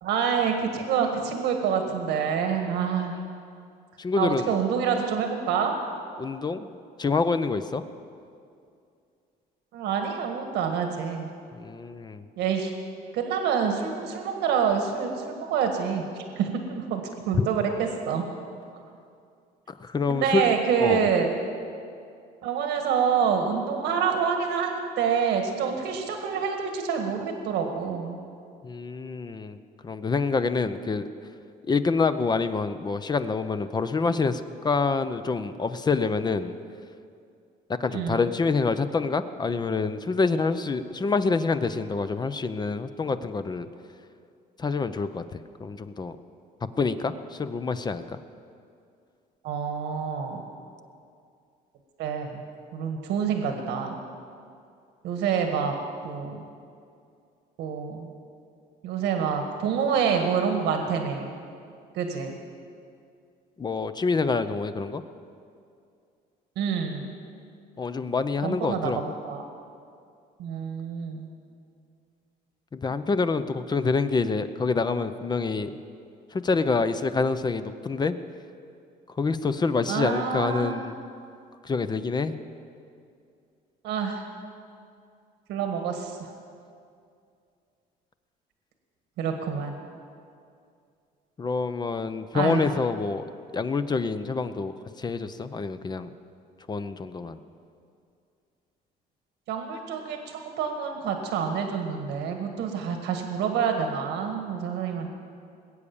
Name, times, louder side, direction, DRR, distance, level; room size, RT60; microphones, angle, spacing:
voice 1, 0.0-3.2 4.2-5.8 9.7-11.3 12.4-12.7 13.1-18.2 20.1-21.3 22.4-28.2 37.9-38.2 49.4-50.4 52.0-52.4 52.7-54.0 55.0-55.7 56.0-56.4 57.6-58.1 58.8-61.3 61.9-62.4 66.5-67.1 68.4-69.5 70.4-71.3 79.9-80.8 83.8-84.3 85.5-86.3 89.2-89.8 92.3-92.7 99.5-105.1, right 7 dB, 85° right, 4 dB, 1.6 m, -27 dB
voice 2, 4.0-4.6 6.2-6.7 7.0-7.8 11.5-12.2 19.7-20.5 20.8-21.1 28.6-29.6 29.8-31.1 31.7-36.5 37.7-43.7 44.6-46.1 46.8-48.2 63.6-65.0 67.8-69.0 72.7-75.7 76.3-78.1 79.2-80.9 81.6-82.4 91.4-93.2 93.5-96.1 96.7-97.4, left 4 dB, 25° left, 11 dB, 0.6 m, -27 dB
20.5 x 8.4 x 7.1 m, 2.4 s
cardioid pair, 110°, 17 cm